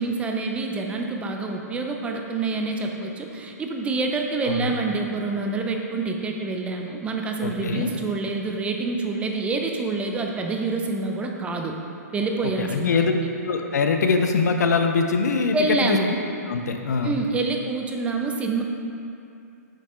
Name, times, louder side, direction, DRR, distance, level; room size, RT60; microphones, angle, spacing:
voice 1, 0.0-11.7 12.1-13.1 15.5-16.1 17.0-18.6, right 3 dB, 15° right, 2 dB, 0.5 m, -27 dB
voice 2, 7.4-7.9 12.6-13.1 13.4-16.0 16.5-17.2, left 4 dB, 75° left, 5 dB, 0.7 m, -23 dB
6.5 x 6.1 x 3.6 m, 2.6 s
hypercardioid pair, 135°, 9 cm